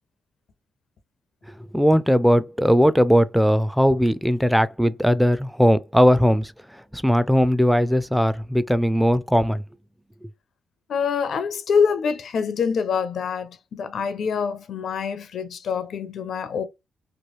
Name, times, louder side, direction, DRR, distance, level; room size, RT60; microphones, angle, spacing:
voice 1, 1.7-9.6 10.2-10.3, equal, ahead, 0.4 m, -19 dB
voice 2, 10.9-16.6, left 6 dB, 70° left, 0.5 m, -25 dB
3.0 x 2.3 x 3.1 m
cardioid pair, 70°, 0 cm